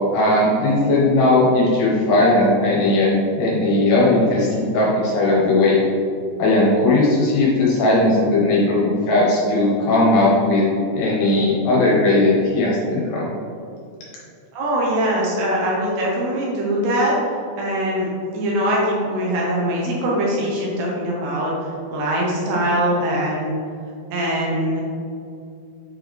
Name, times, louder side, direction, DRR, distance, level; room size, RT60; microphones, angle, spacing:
voice 1, 0.1-5.8 6.4-13.2, left 2 dB, 70° left, -6 dB, 3.0 m, -17 dB
voice 2, 14.5-17.1 17.6-21.5 21.9-23.6 24.1-24.8, right 1 dB, 75° right, -4 dB, 3.0 m, -22 dB
7.8 x 4.6 x 3.1 m, 2.5 s
omnidirectional pair, 5.4 m